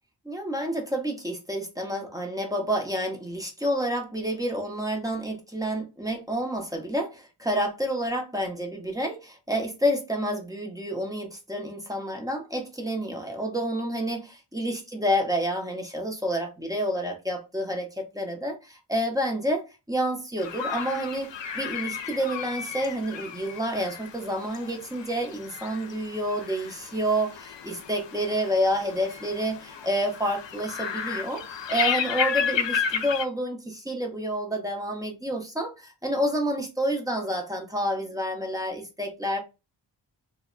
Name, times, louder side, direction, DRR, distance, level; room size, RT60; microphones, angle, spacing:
voice 1, 0.3-21.3 21.5-39.4, equal, 10° right, 0.7 m, -29 dB
sound 1, 20.4-33.2, left 7 dB, 80° left, 0.6 m, -33 dB
3.3 x 2.1 x 3.7 m
wide cardioid pair, 160°, 43 cm